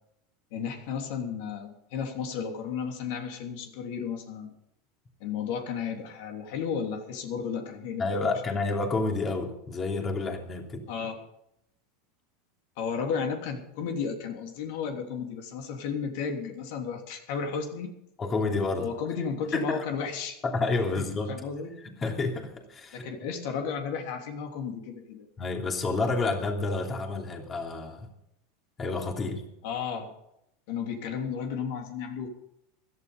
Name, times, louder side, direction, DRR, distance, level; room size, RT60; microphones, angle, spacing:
voice 1, 0.5-4.5 5.2-8.3 10.9-11.1 12.8-17.9 18.8-20.4 20.9-21.7 22.9-25.3 29.6-30.1 30.7-32.3, left 6 dB, 70° left, 4 dB, 3.1 m, -33 dB
voice 2, 8.0-10.9 18.2-18.9 19.1-19.2 19.5-19.8 20.4-21.4 21.8-23.0 25.4-28.1 28.8-29.4, left 3 dB, 25° left, 3 dB, 3.0 m, -29 dB
16.5 x 12.5 x 5.3 m, 0.79 s
supercardioid pair, 110°, 0 cm